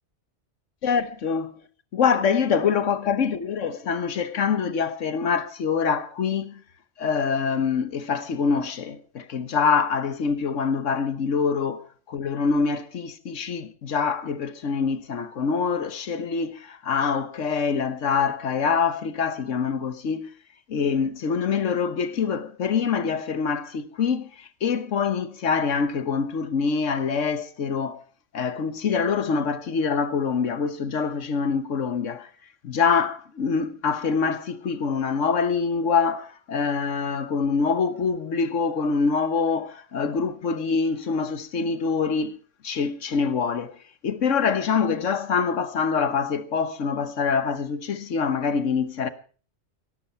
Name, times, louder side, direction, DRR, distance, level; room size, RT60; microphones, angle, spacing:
voice 1, 0.8-1.6 1.9-6.6 7.0-20.3 20.7-28.0 28.3-32.3 32.6-42.3 42.6-43.7 44.0-49.1, left 5 dB, 85° left, 1.5 m, -25 dB
17.0 x 14.0 x 4.4 m
omnidirectional pair, 1.2 m